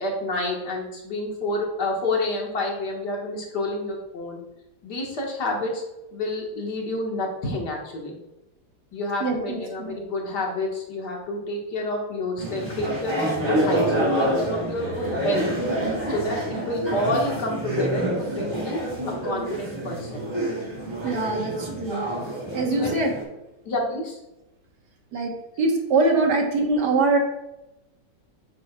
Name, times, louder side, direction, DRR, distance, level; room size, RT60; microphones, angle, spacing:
voice 1, 0.0-4.4 4.8-5.8 6.1-8.2 8.9-15.5 16.1-18.8 19.1-20.3 21.5-21.7 22.7-22.9 23.7-24.2, left 2 dB, 80° left, -1 dB, 2.2 m, -29 dB
voice 2, 9.2-9.9 21.0-22.0 22.5-23.1 25.1-27.2, right 3 dB, 80° right, 2 dB, 1.9 m, -23 dB
sound 1, 12.4-23.2, right 1 dB, 15° right, 2.8 m, -27 dB
8.5 x 7.8 x 2.4 m, 0.94 s
omnidirectional pair, 1.8 m